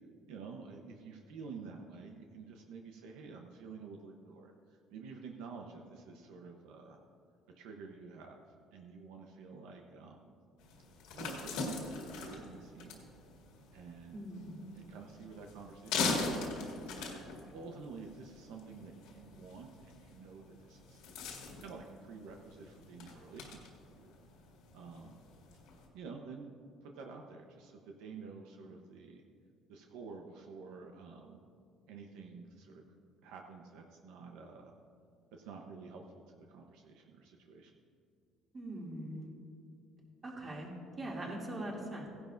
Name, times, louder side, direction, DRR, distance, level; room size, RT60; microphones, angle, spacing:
voice 1, 0.3-7.0 7.6-8.4 8.7-10.3 11.1-13.0 13.7-14.2 14.7-21.0 21.6-23.7 24.0-24.1 24.7-25.2 25.9-26.5 26.8-29.2 29.7-31.4 31.9-32.8 33.2-34.7 35.3-37.7, right 4 dB, 85° right, 2 dB, 0.9 m, -50 dB
sound 1, 10.6-25.9, left 3 dB, 90° left, 2.1 m, -42 dB
voice 2, 14.1-14.7 38.5-39.3 40.2-40.7 41.0-42.1, right 1 dB, 30° right, -3 dB, 2.6 m, -41 dB
16.5 x 11.0 x 2.6 m, 2.3 s
cardioid pair, 110°, 0 cm